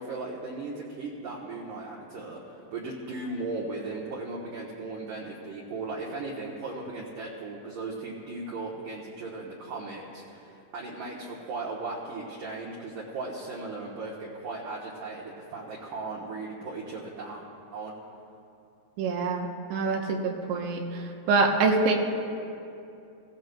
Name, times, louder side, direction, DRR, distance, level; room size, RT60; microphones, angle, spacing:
voice 1, 0.0-17.4 17.7-17.9, right 3 dB, 70° right, -4 dB, 2.1 m, -37 dB
voice 2, 19.0-20.2 20.5-20.8 21.3-21.9, right 4 dB, 90° right, 1 dB, 3.4 m, -24 dB
21.0 x 16.0 x 2.3 m, 2.7 s
omnidirectional pair, 5.2 m